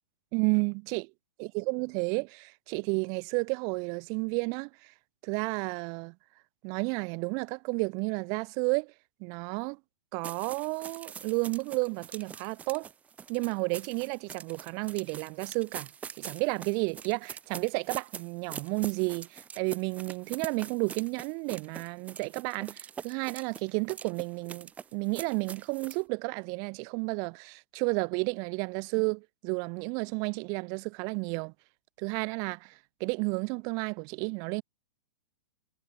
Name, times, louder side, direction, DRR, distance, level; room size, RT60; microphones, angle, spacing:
voice 1, 0.3-1.1 1.4-4.9 5.2-6.1 6.6-8.9 9.2-9.8 10.1-12.9 13.3-15.9 16.2-31.5 32.0-34.6, right 35 dB, 25° right, 3.2 m, -32 dB
sound 1, 10.2-26.0, right 7 dB, 10° right, 4.6 m, -44 dB
hypercardioid pair, 180°, 15 cm